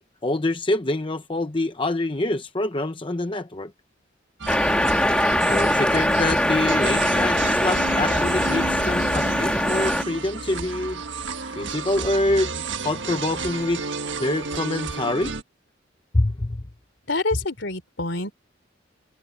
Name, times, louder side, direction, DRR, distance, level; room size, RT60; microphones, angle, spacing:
voice 1, 0.2-3.7 5.4-11.0 11.6-12.5 12.8-13.8 14.2-15.3 16.1-16.6, left 2 dB, 25° left, 0.8 m, -25 dB
sound 1, 4.4-15.4, right 4 dB, 75° right, 1.5 m, -31 dB
sound 2, 4.5-10.0, left 1 dB, 5° left, 1.7 m, -22 dB
voice 2, 17.1-18.3, left 2 dB, 70° left, 3.6 m, -26 dB
head